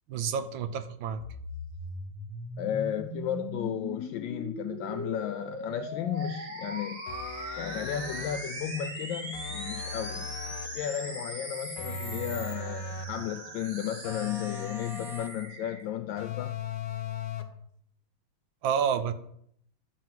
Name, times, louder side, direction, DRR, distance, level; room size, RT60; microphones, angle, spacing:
voice 1, 0.1-1.2 18.6-19.1, right 7 dB, 75° right, 10 dB, 1.5 m, -29 dB
sound 1, 1.2-12.5, left 1 dB, 20° left, 0.3 m, -39 dB
voice 2, 2.6-7.0 7.6-16.6, left 10 dB, 75° left, 8 dB, 1.2 m, -34 dB
sound 2, 6.2-15.8, right 3 dB, 45° right, 2.0 m, -44 dB
sound 3, 7.1-8.5 9.3-10.8 11.8-13.2 14.0-15.5 16.2-17.6, left 5 dB, 55° left, 1.1 m, -38 dB
11.5 x 4.7 x 7.7 m, 0.70 s
omnidirectional pair, 2.2 m